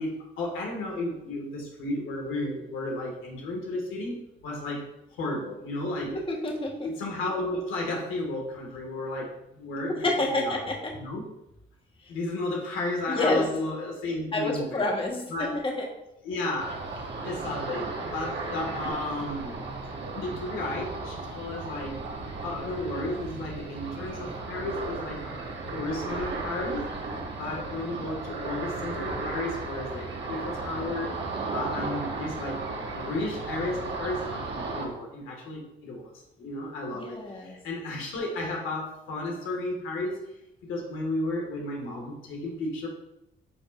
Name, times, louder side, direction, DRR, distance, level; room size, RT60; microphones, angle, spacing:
voice 1, 0.0-4.2 4.4-4.9 5.1-6.2 6.8-10.6 11.0-11.3 12.1-14.8 15.3-15.6 16.2-16.8 17.2-19.5 20.2-22.0 22.4-25.3 25.7-26.9 27.3-31.2 31.5-32.6 32.9-40.2 40.6-42.9, left 2 dB, 85° left, -1 dB, 2.0 m, -33 dB
voice 2, 6.0-6.9 9.9-10.9 12.0-12.1 13.1-13.5 14.3-15.9 36.9-37.5, left 2 dB, 25° left, 0 dB, 1.5 m, -28 dB
Ocean, 16.6-34.8, right 3 dB, 60° right, 1.8 m, -35 dB
9.6 x 5.1 x 2.6 m, 0.86 s
cardioid pair, 90°, 20 cm